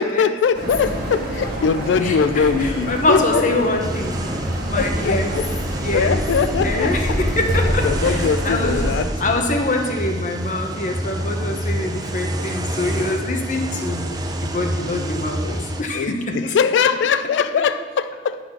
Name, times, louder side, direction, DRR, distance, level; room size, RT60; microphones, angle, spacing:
voice 1, 0.0-3.4 4.8-5.5 5.9-6.9 7.8-9.1 13.2-13.4 15.4-15.7 15.9-18.4, left 6 dB, 75° left, 12 dB, 0.3 m, -21 dB
sound 1, 0.5-9.0, equal, 50° right, 1.8 m, -27 dB
voice 2, 2.0-4.2 4.7-5.4 5.8-6.2 6.6-8.8 9.2-14.1 14.4-15.4 15.8-16.6, left 2 dB, 45° left, 3 dB, 0.9 m, -24 dB
sound 2, 3.8-15.8, right 1 dB, 20° right, 0.5 m, -27 dB
9.5 x 4.1 x 5.9 m, 1.5 s
head